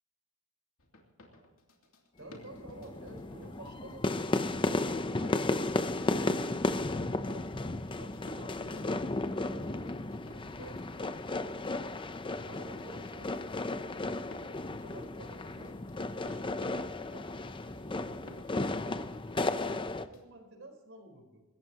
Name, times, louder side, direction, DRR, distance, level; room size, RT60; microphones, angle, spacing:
sound 1, 0.8-20.2, left 1 dB, 70° left, 3.0 m, -56 dB
sound 2, 2.2-20.1, left 2 dB, 25° left, 0.7 m, -34 dB
voice 1, 2.2-4.1 5.1-9.0 9.3-10.0 10.3-10.8 11.3-11.9 12.4-14.2 14.7-16.4 16.7-19.1 19.4-21.4, right 1 dB, 60° right, 4 dB, 4.4 m, -51 dB
25.5 x 14.5 x 3.0 m, 1.2 s
head